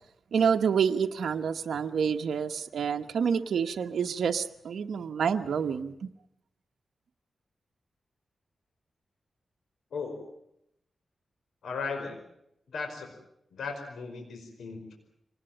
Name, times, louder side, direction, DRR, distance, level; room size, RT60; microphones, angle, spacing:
voice 1, 0.3-6.1, right 7 dB, 80° right, 5 dB, 1.1 m, -28 dB
voice 2, 11.6-12.2 12.7-13.1 13.5-14.9, left 4 dB, 85° left, 4 dB, 5.1 m, -36 dB
25.5 x 19.5 x 8.9 m, 0.78 s
cardioid pair, 80°, 0 cm